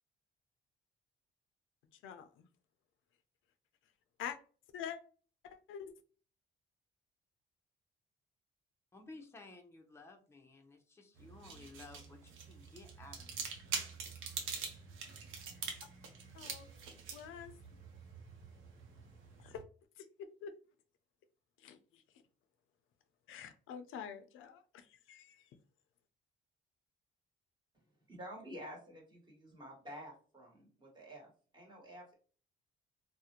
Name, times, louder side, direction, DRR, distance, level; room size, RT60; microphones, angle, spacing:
voice 1, 2.0-2.4 4.2-4.4 4.7-5.0 5.7-5.9 16.3-16.7 17.1-17.5 19.4-19.6 20.2-20.5 21.6-21.8 23.3-24.8 25.1-25.4, left 8 dB, 85° left, 9 dB, 0.4 m, -45 dB
voice 2, 8.9-13.5 14.2-14.4, left 3 dB, 15° left, 3 dB, 0.5 m, -55 dB
sound 1, 11.2-19.6, right 5 dB, 85° right, 0.6 m, -45 dB
voice 3, 28.1-32.1, equal, 20° right, -1 dB, 1.2 m, -50 dB
2.4 x 2.1 x 2.8 m, 0.39 s
cardioid pair, 90°, 20 cm